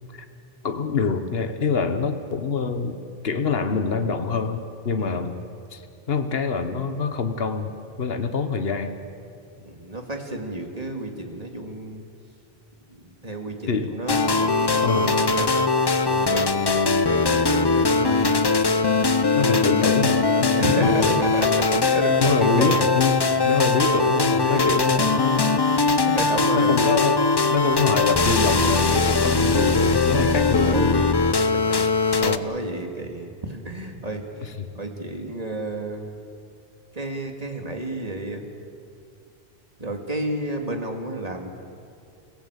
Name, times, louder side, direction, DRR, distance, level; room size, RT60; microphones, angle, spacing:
voice 1, 0.6-3.0 3.2-5.4 5.7-5.8 6.1-7.7 8.0-8.9 13.7-14.0 14.8-15.2 19.3-21.2 22.2-25.5 26.5-31.0 32.2-32.5 34.4-34.7, left 5 dB, 70° left, 8 dB, 1.5 m, -25 dB
voice 2, 5.0-5.3 9.6-12.0 12.9-15.7 16.1-18.4 19.3-19.8 20.5-23.2 23.6-24.1 24.4-24.8 25.4-25.8 26.0-26.8 30.3-31.0 31.3-34.5 34.7-36.1 36.9-38.4 39.8-41.5, right 1 dB, 35° right, 3 dB, 2.5 m, -32 dB
sound 1, 14.1-32.4, left 3 dB, 25° left, 0.6 m, -21 dB
28.5 x 17.0 x 8.2 m, 2.5 s
omnidirectional pair, 1.1 m